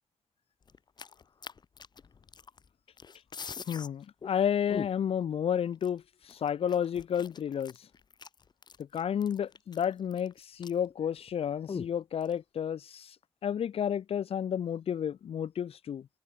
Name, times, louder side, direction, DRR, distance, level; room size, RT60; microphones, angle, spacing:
sound 1, 0.7-2.7 3.0-3.9 4.2-4.3 4.7-5.2 5.8-5.9 6.3-10.9 11.2-11.3 11.7-12.3, left 6 dB, 45° left, 0.9 m, -42 dB
voice 1, 3.7-6.0 6.3-7.7 8.9-13.1 13.4-16.1, left 8 dB, 80° left, 0.5 m, -31 dB
wide cardioid pair, 175°, 10 cm